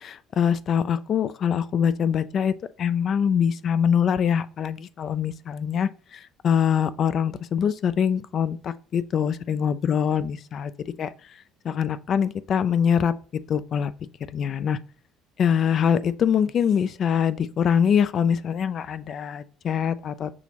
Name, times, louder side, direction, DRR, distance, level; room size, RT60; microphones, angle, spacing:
voice 1, 0.0-2.5 2.8-10.7 11.0-11.1 11.6-13.1 13.5-13.9 14.3-14.8 15.4-20.3, left 8 dB, 50° left, 0.3 m, -24 dB
6.1 x 3.0 x 2.8 m
supercardioid pair, 100°, 0 cm